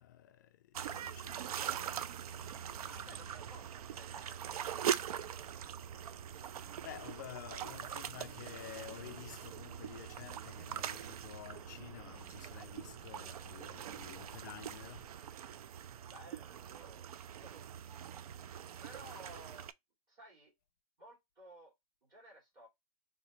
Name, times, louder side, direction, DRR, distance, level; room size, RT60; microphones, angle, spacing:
voice 1, 0.0-3.3 6.4-15.5, left 12 dB, 30° left, 0.3 m, -52 dB
sound 1, 0.7-19.7, right 9 dB, 65° right, 0.4 m, -42 dB
sound 2, 2.3-15.1, right 3 dB, ahead, 1.2 m, -61 dB
voice 2, 2.8-4.6 16.0-18.2 18.8-19.7 20.1-20.5 21.0-21.7 22.0-22.7, right 1 dB, 20° right, 2.7 m, -56 dB
4.0 x 2.8 x 3.0 m
hypercardioid pair, 165°, 20 cm